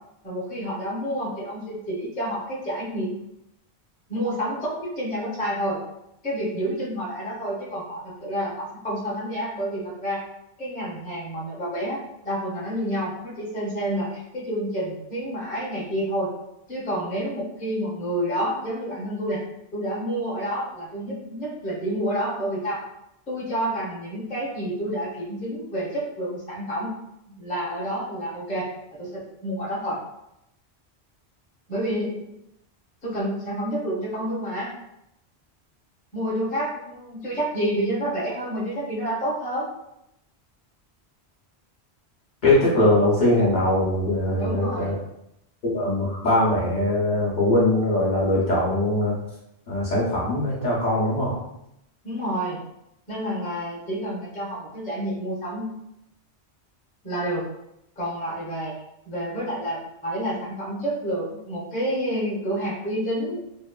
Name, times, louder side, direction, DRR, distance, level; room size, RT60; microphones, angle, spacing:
voice 1, 0.2-3.2 4.1-5.8 6.2-10.2 10.6-16.3 16.7-19.4 19.7-22.8 23.3-26.9 27.4-30.0 31.7-32.3 33.0-34.7 36.1-39.7 44.4-44.9 52.0-52.6 53.1-55.7 57.0-57.5 58.0-58.7 59.1-63.5, equal, 10° left, -6 dB, 0.5 m, -29 dB
voice 2, 42.4-45.0 45.6-49.1 49.7-51.4, left 1 dB, 50° left, -7 dB, 0.8 m, -21 dB
2.9 x 2.0 x 2.2 m, 0.82 s
omnidirectional pair, 1.1 m